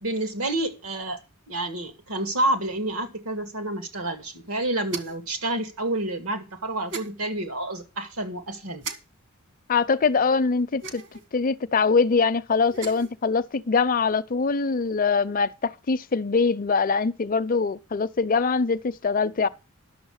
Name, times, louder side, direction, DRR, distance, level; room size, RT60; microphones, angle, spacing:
voice 1, 0.0-1.2 1.5-8.8, right 1 dB, 80° right, 2.3 m, -29 dB
sound 1, 4.9-5.3 6.9-7.1 8.8-9.0 10.8-11.3 12.6-13.1, right 5 dB, 60° right, 1.6 m, -36 dB
voice 2, 9.7-11.0 11.3-19.5, left 4 dB, 40° left, 0.5 m, -23 dB
11.0 x 6.9 x 6.4 m
head